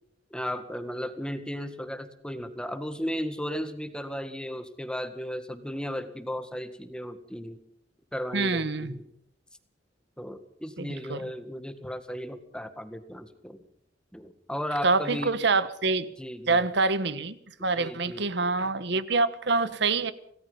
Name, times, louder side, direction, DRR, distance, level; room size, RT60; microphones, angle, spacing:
voice 1, 0.3-7.6 8.1-9.0 10.2-13.6 14.1-15.3 16.2-16.6 17.7-18.2, equal, 5° left, 10 dB, 1.8 m, -35 dB
voice 2, 8.3-9.0 10.8-11.3 14.8-16.1 16.5-20.1, right 3 dB, 65° right, 14 dB, 1.4 m, -26 dB
26.0 x 18.0 x 5.6 m, 0.68 s
head